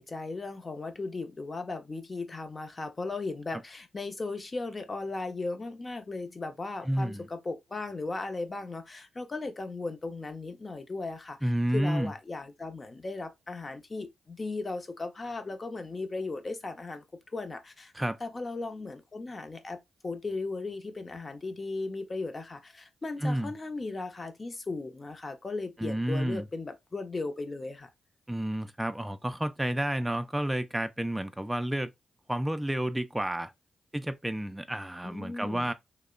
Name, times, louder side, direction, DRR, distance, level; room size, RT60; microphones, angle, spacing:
voice 1, 0.0-11.4 11.7-17.0 17.3-17.9 18.2-19.8 20.0-27.9 35.0-35.7, left 3 dB, 40° left, 0.7 m, -37 dB
voice 2, 6.9-7.3 11.4-12.1 17.9-18.2 23.2-23.5 25.8-26.5 28.3-31.9 32.3-33.5 33.9-35.7, right 1 dB, 10° right, 0.4 m, -30 dB
2.7 x 2.1 x 2.4 m
supercardioid pair, 45°, 0 cm